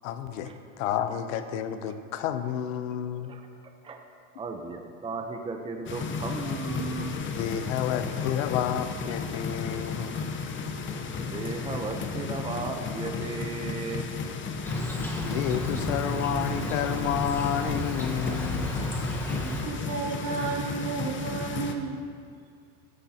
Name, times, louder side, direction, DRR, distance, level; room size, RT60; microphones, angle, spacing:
voice 1, 0.0-0.5 0.8-3.3 7.3-10.3 15.2-18.9, left 9 dB, 80° left, 10 dB, 0.8 m, -30 dB
voice 2, 4.3-7.2 11.2-14.1, right 4 dB, 15° right, 3 dB, 0.8 m, -35 dB
sound 1, 5.9-21.7, left 5 dB, 30° left, 0.9 m, -34 dB
sound 2, 13.2-19.5, left 2 dB, 60° left, 2.9 m, -44 dB
Insect, 14.6-19.6, right 1 dB, 5° left, 1.3 m, -34 dB
voice 3, 19.3-22.0, right 5 dB, 65° right, -3 dB, 3.0 m, -33 dB
17.0 x 9.9 x 2.9 m, 2.3 s
supercardioid pair, 110°, 39 cm